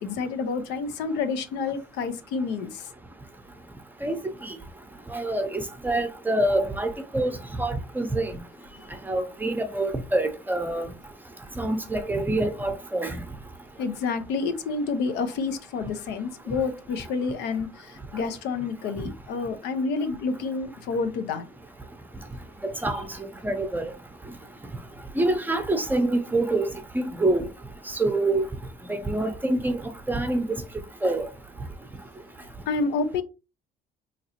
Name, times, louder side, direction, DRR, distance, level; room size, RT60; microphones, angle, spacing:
voice 1, 0.0-2.9 13.8-21.5 32.7-33.2, left 4 dB, 85° left, 0.7 m, -29 dB
voice 2, 5.1-8.4 9.1-10.9 11.6-13.2 22.6-23.9 25.2-27.5 28.0-28.5 28.9-30.6 31.0-31.3, right 2 dB, 10° right, 0.6 m, -26 dB
3.8 x 3.0 x 2.8 m
cardioid pair, 110°, 17 cm